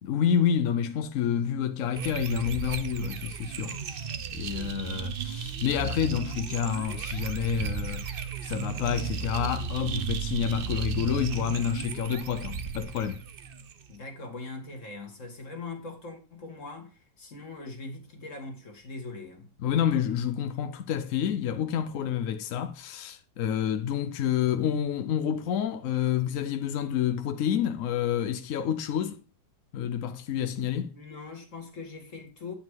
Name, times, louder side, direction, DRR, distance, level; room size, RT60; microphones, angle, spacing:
voice 1, 0.0-8.1 8.4-13.2 19.6-29.2 29.7-30.9, left 9 dB, 65° left, 0.8 m, -29 dB
sound 1, 1.9-13.9, right 6 dB, 80° right, 0.5 m, -34 dB
voice 2, 13.9-19.5 30.9-32.6, left 3 dB, 45° left, 2.1 m, -41 dB
9.3 x 5.2 x 4.6 m
omnidirectional pair, 1.9 m